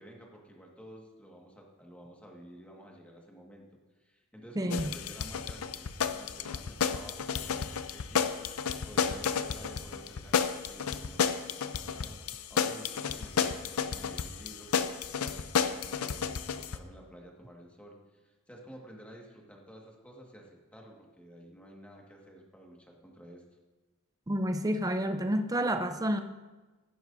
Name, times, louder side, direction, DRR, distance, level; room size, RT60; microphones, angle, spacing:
voice 1, 0.0-3.6 4.0-23.4, equal, 5° left, -1 dB, 1.7 m, -51 dB
voice 2, 4.6-4.9 24.3-26.2, right 1 dB, 15° right, 7 dB, 0.6 m, -29 dB
sound 1, 4.7-16.8, left 6 dB, 90° left, 0.6 m, -32 dB
16.0 x 11.0 x 2.7 m, 1.2 s
head